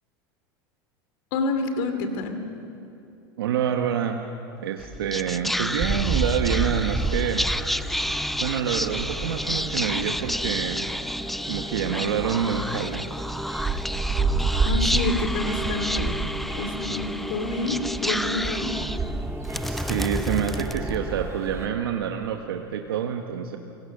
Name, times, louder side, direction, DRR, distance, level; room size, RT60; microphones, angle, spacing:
voice 1, 1.3-2.4 14.6-16.2 16.5-17.8 18.0-18.8, left 3 dB, 70° left, 7 dB, 2.7 m, -28 dB
voice 2, 3.4-4.2 4.6-7.5 8.4-10.9 11.5-13.1 19.7-23.6, right 8 dB, 90° right, 4 dB, 1.2 m, -27 dB
Whispering, 4.8-21.4, equal, ahead, 0.4 m, -30 dB
sound 1, 5.8-21.7, right 3 dB, 20° right, 2.3 m, -31 dB
28.0 x 17.0 x 6.6 m, 2.7 s
hypercardioid pair, 105°, 12 cm